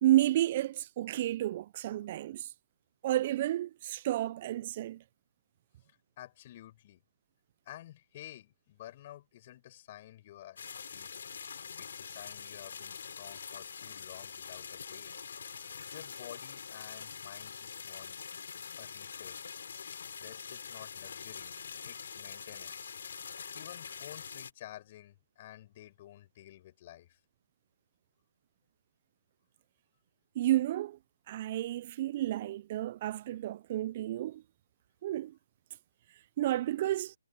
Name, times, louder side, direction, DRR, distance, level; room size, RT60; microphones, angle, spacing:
voice 1, 0.0-2.5 3.0-5.0 30.4-31.0 31.3-34.4 35.0-35.3 36.4-37.1, right 14 dB, 35° right, 0.3 m, -31 dB
voice 2, 5.8-7.0 7.7-10.6 10.9-11.1 11.8-15.1 15.9-18.2 18.8-19.4 19.9-21.5 21.8-22.9 23.5-27.2, left 13 dB, 35° left, 7.0 m, -51 dB
sound 1, 10.6-24.5, left 6 dB, 60° left, 7.9 m, -44 dB
hypercardioid pair, 155°, 0 cm